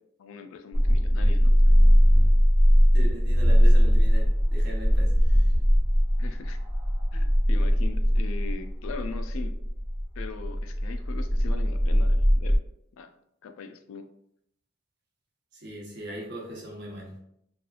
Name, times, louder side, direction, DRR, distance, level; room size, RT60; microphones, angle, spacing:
voice 1, 0.2-1.5 6.2-6.6 7.1-9.6 10.2-12.6 13.0-13.1 13.4-14.1, left 5 dB, 85° left, 8 dB, 0.3 m, -40 dB
sound 1, 0.7-12.6, equal, ahead, 0.5 m, -20 dB
voice 2, 2.9-5.5 15.5-17.2, right 1 dB, 55° right, -2 dB, 0.7 m, -40 dB
2.8 x 2.3 x 2.3 m, 0.75 s
head